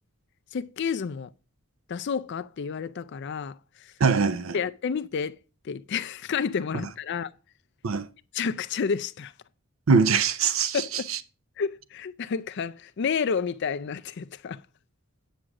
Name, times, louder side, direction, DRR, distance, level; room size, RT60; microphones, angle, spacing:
voice 1, 0.5-1.3 1.9-3.9 4.5-5.4 5.6-7.3 8.3-9.3 10.7-11.1 11.6-14.6, left 6 dB, 55° left, 0.4 m, -30 dB
voice 2, 4.0-4.6 7.8-8.1 9.9-11.2, right 5 dB, 85° right, 0.6 m, -22 dB
9.2 x 6.3 x 4.8 m
head